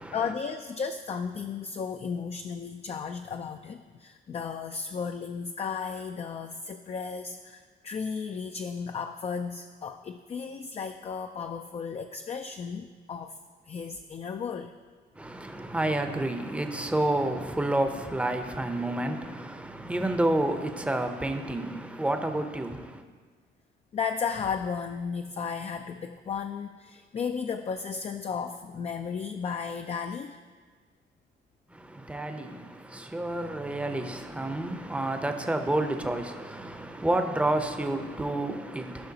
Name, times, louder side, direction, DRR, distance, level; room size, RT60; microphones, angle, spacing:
voice 1, 0.1-13.4 13.7-14.7 23.9-30.4, left 6 dB, 30° left, 0.4 m, -34 dB
voice 2, 15.1-23.0 31.7-39.1, right 1 dB, 5° right, 0.7 m, -30 dB
14.5 x 5.6 x 2.8 m
cardioid pair, 90°, 20 cm